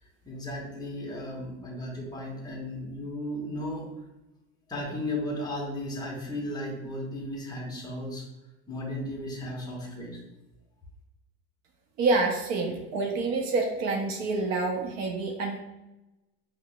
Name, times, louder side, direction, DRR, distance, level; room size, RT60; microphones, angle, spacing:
voice 1, 0.2-3.9 4.7-8.2 8.7-10.2, left 1 dB, 10° left, -1 dB, 0.8 m, -35 dB
voice 2, 12.0-15.6, right 3 dB, 45° right, 1 dB, 0.6 m, -27 dB
4.6 x 2.0 x 2.2 m, 0.99 s
supercardioid pair, 125°, 36 cm